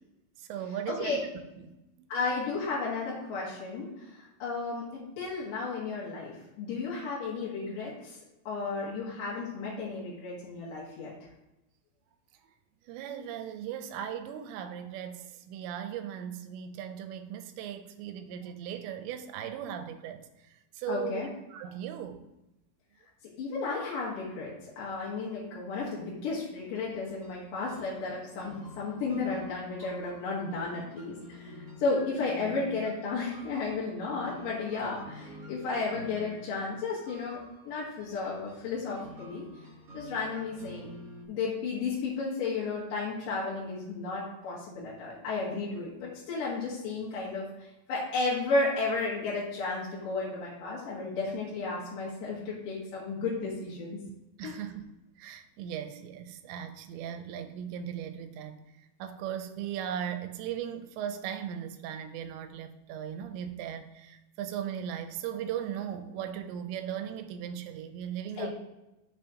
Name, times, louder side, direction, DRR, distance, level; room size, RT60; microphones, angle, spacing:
voice 1, 0.4-2.1 12.9-22.3 39.9-40.1 54.4-54.9 55.2-58.6 59.0-68.5, right 9 dB, 90° right, 8 dB, 2.9 m, -38 dB
voice 2, 2.1-4.8 5.2-8.2 8.5-11.1 20.9-21.3 23.4-39.4 39.9-40.9 41.3-54.0 54.4-54.6 68.4-68.5, left 3 dB, 60° left, -6 dB, 2.8 m, -33 dB
sound 1, 26.5-41.3, left 1 dB, 45° right, 2.4 m, -49 dB
9.1 x 6.9 x 2.9 m, 0.95 s
omnidirectional pair, 5.1 m